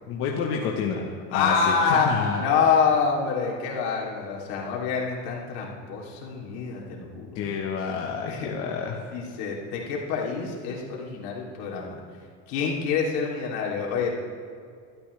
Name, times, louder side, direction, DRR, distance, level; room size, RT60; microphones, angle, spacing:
voice 1, 0.1-2.4 7.3-9.0, left 6 dB, 40° left, -1 dB, 1.1 m, -29 dB
voice 2, 1.3-7.4 8.3-8.5 9.1-12.0 12.5-14.1, left 5 dB, 65° left, -2 dB, 3.1 m, -26 dB
21.5 x 12.5 x 3.3 m, 2.3 s
cardioid pair, 175°, 35 cm